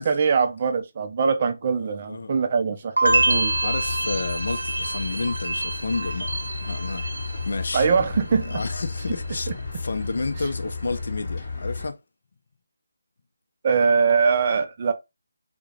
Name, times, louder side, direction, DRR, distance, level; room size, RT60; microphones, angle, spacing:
voice 1, 0.0-3.5 7.7-8.6 9.5-9.6 13.6-14.9, right 5 dB, 35° right, 0.4 m, -22 dB
voice 2, 1.7-2.3 3.0-7.9 8.4-12.0, left 3 dB, 55° left, 0.4 m, -31 dB
sound 1, 3.0-11.9, left 4 dB, 35° left, 1.0 m, -33 dB
sound 2, 3.0-8.0 8.3-8.9, right 2 dB, 80° right, 0.7 m, -27 dB
2.3 x 2.1 x 2.9 m
figure-of-eight pair, 160°, 0 cm